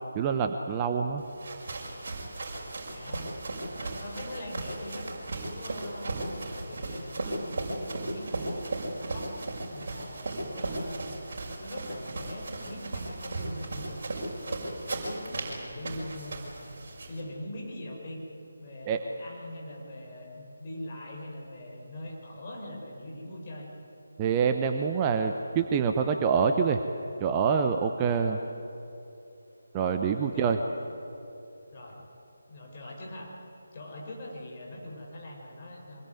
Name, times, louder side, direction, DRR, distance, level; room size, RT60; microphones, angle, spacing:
voice 1, 0.1-1.2 18.9-19.0 24.2-26.8 27.2-28.4 29.7-30.6, right 6 dB, 15° right, 5 dB, 0.9 m, -26 dB
sound 1, 1.2-17.2, right 2 dB, 40° right, 6.0 m, -36 dB
voice 2, 2.9-3.3 3.6-5.1 5.3-9.4 9.7-11.1 11.6-16.8 17.1-18.2 18.6-23.7 30.2-30.5 31.7-32.0 32.5-33.4 33.7-36.1, left 1 dB, 30° left, -2 dB, 5.9 m, -42 dB
25.0 x 22.0 x 9.6 m, 2.8 s
figure-of-eight pair, 155°, 0 cm